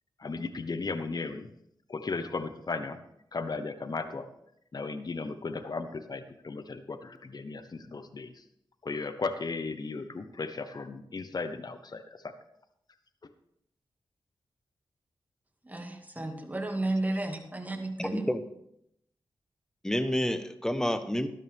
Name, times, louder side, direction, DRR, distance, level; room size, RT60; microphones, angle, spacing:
voice 1, 0.2-1.5 1.9-3.0 3.3-4.2 4.7-8.3 8.8-12.0, left 3 dB, 50° left, 10 dB, 1.1 m, -35 dB
voice 2, 15.6-18.3, right 2 dB, 20° right, 4 dB, 2.2 m, -33 dB
voice 3, 18.0-18.4 19.8-21.3, equal, 5° left, 10 dB, 1.2 m, -29 dB
13.0 x 12.0 x 3.6 m, 0.76 s
cardioid pair, 45°, 9 cm